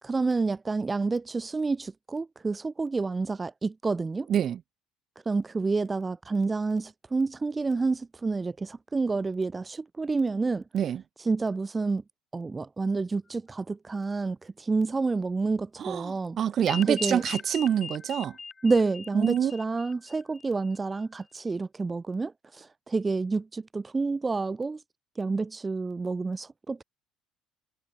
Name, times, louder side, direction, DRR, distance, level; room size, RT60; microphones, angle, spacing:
voice 1, 0.0-4.3 5.3-10.6 11.2-12.0 12.3-16.4 16.9-17.2 18.6-24.8 25.2-26.8, right 3 dB, 20° right, 0.7 m, -29 dB
voice 2, 4.3-4.6 10.7-11.0 15.8-18.4 19.1-19.5, right 9 dB, 45° right, 2.1 m, -26 dB
sound 1, 16.7-20.8, left 4 dB, 25° left, 4.6 m, -40 dB
cardioid pair, 105°, 0 cm